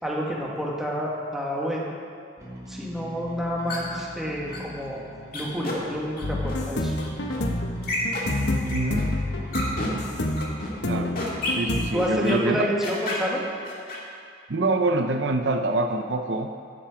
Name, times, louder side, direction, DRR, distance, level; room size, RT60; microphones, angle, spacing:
voice 1, 0.0-1.9 2.7-5.0 5.3-6.9 11.9-13.4, equal, ahead, -4 dB, 1.6 m, -28 dB
Bass guitar, 2.4-12.0, equal, 15° right, 2.1 m, -42 dB
sound 1, 3.7-4.0 4.5-4.6 5.3-5.7 6.2-6.5 7.0-7.4 7.8-8.2 8.7-9.0 9.5-9.9 10.4-10.7 11.2-11.5 12.0-12.3 12.8-13.2 13.6-14.0, left 2 dB, 50° left, 2.1 m, -31 dB
sound 2, 6.2-11.9, left 1 dB, 65° left, 1.1 m, -28 dB
voice 2, 8.6-9.1 10.8-11.2 11.5-12.6 14.5-16.7, right 2 dB, 70° right, 6 dB, 0.7 m, -25 dB
14.0 x 8.9 x 5.0 m, 2.3 s
head